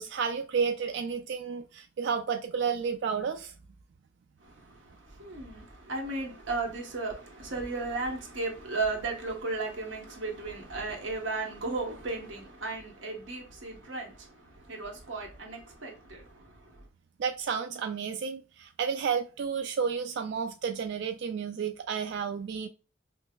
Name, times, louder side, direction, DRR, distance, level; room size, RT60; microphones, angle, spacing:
voice 1, 0.0-3.5 17.2-22.7, right 6 dB, 60° right, 0.3 m, -31 dB
voice 2, 4.4-16.9, right 3 dB, 90° right, 1.1 m, -35 dB
5.3 x 2.0 x 2.3 m
head